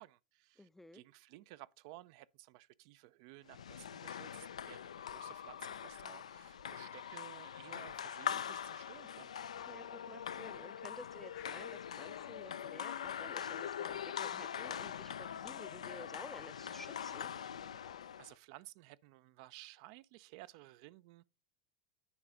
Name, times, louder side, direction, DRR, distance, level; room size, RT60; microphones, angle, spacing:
voice 1, 0.0-9.5 18.2-21.2, right 17 dB, 60° right, 0.5 m, -56 dB
voice 2, 0.6-1.0 9.7-17.3, left 2 dB, 5° left, 0.4 m, -53 dB
sound 1, 3.5-18.3, left 8 dB, 85° left, 0.4 m, -43 dB
sound 2, 9.5-9.8 10.4-10.7 11.3-11.7 12.1-12.5 12.9-13.3 13.8-14.1 14.6-14.9 15.3-15.7 16.2-16.6 17.0-17.4 17.8-18.1, left 13 dB, 65° left, 0.9 m, -57 dB
9.7 x 4.7 x 3.9 m
hypercardioid pair, 90°, 3 cm